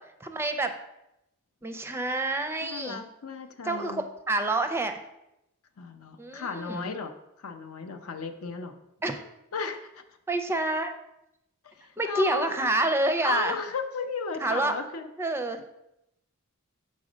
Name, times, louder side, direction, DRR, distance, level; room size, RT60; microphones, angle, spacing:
voice 1, 0.2-0.8 1.6-3.0 3.6-5.0 6.2-6.9 9.0-9.2 10.3-11.0 12.0-13.6 14.4-14.7 15.2-15.6, right 2 dB, 10° right, 7 dB, 0.5 m, -28 dB
voice 2, 2.6-4.0 5.8-7.1 7.4-8.7 9.5-10.0 11.6-12.6 13.2-15.1, left 4 dB, 70° left, 6 dB, 0.6 m, -35 dB
6.3 x 4.1 x 5.0 m, 0.85 s
head